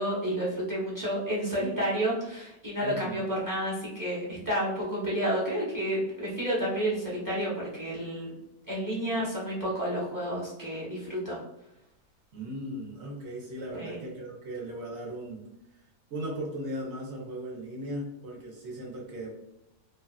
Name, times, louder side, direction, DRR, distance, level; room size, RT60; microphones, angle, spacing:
voice 1, 0.0-8.3 8.7-11.4 13.7-14.0, equal, 20° right, -7 dB, 0.5 m, -30 dB
voice 2, 2.8-3.2 12.3-15.4 16.1-19.3, right 1 dB, 55° right, -2 dB, 0.8 m, -37 dB
2.8 x 2.2 x 2.3 m, 0.88 s
omnidirectional pair, 1.8 m